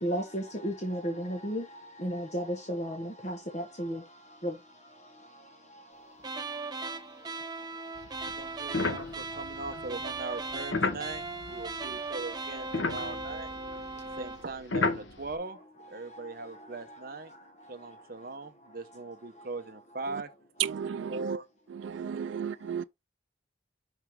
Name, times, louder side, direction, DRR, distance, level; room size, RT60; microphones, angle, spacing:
voice 1, 0.0-1.6 2.0-2.4 2.8-2.9 3.9-4.0, equal, 40° left, 1.2 m, -32 dB
sound 1, 6.2-14.5, right 3 dB, 20° right, 0.8 m, -38 dB
sound 2, 8.0-12.2 12.5-15.4, left 3 dB, 80° left, 1.0 m, -34 dB
voice 2, 8.3-13.6 14.1-15.6 15.9-17.3 17.7-20.3 21.1-21.5 22.2-22.4, right 3 dB, 50° right, 0.9 m, -40 dB
voice 3, 20.6-21.4 21.7-22.8, right 8 dB, 80° right, 0.3 m, -33 dB
6.0 x 5.5 x 3.5 m
head